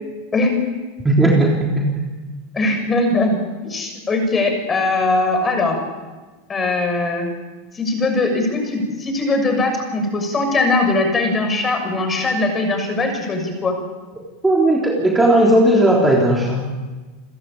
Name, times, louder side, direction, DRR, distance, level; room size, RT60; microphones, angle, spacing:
voice 1, 1.0-1.9 14.4-16.6, right 1 dB, 10° right, -2 dB, 3.6 m, -15 dB
voice 2, 2.5-5.8 6.5-7.3 7.7-13.8, left 2 dB, 20° left, 4 dB, 6.6 m, -20 dB
29.5 x 14.5 x 8.8 m, 1.3 s
supercardioid pair, 130°, 0 cm